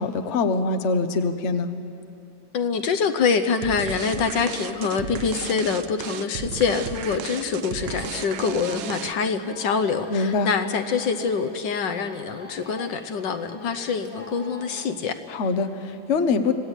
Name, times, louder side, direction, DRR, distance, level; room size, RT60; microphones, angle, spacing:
voice 1, 0.0-1.7 10.1-10.5 15.3-16.5, left 4 dB, 45° left, 8 dB, 1.1 m, -24 dB
voice 2, 2.5-15.1, left 5 dB, 70° left, 8 dB, 1.5 m, -25 dB
sound 1, 3.6-9.4, right 7 dB, 60° right, 0.8 m, -34 dB
Carnatic varnam by Sreevidya in Saveri raaga, 7.8-15.0, equal, 5° right, 1.3 m, -43 dB
25.5 x 17.0 x 8.2 m, 2.6 s
omnidirectional pair, 2.1 m